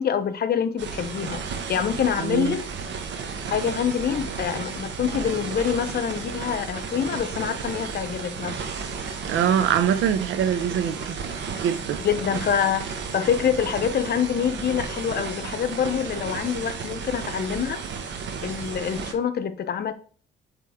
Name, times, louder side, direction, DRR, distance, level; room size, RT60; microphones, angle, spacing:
voice 1, 0.0-1.4 1.7-2.6 3.5-8.6 12.0-12.9 13.1-17.8 18.4-19.9, left 8 dB, 50° left, 0.8 m, -26 dB
sound 1, 0.8-19.1, right 5 dB, 65° right, 1.0 m, -33 dB
voice 2, 9.3-11.1 11.6-12.0, right 9 dB, 80° right, 0.6 m, -23 dB
7.5 x 3.5 x 3.6 m
cardioid pair, 90°, 20 cm